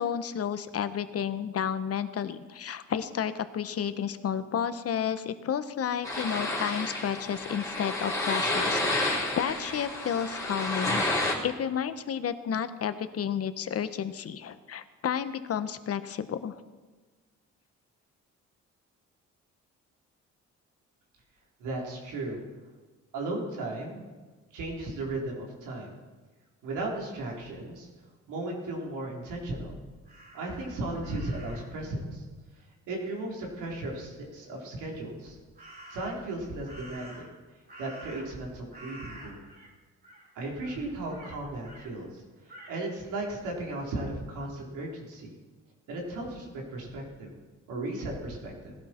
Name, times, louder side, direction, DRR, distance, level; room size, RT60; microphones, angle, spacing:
voice 1, 0.0-11.0 11.4-16.5, left 8 dB, 50° left, 12 dB, 1.0 m, -31 dB
sound 1, 6.0-11.3, left 2 dB, 10° left, 3.7 m, -30 dB
voice 2, 21.6-22.4 23.1-24.1 24.5-25.9 26.6-27.9 28.3-29.8 30.3-32.2 32.9-35.4 35.9-37.3 37.8-39.4 40.4-45.3 45.9-47.3 47.7-48.7, right 2 dB, 90° right, -1 dB, 3.5 m, -36 dB
Crow, 30.1-31.8 35.6-36.3 36.7-38.5 38.7-39.7 40.0-40.3 40.6-41.9 42.5-42.8, right 1 dB, 30° right, 3.9 m, -49 dB
18.5 x 12.0 x 4.4 m, 1.3 s
cardioid pair, 90°, 30 cm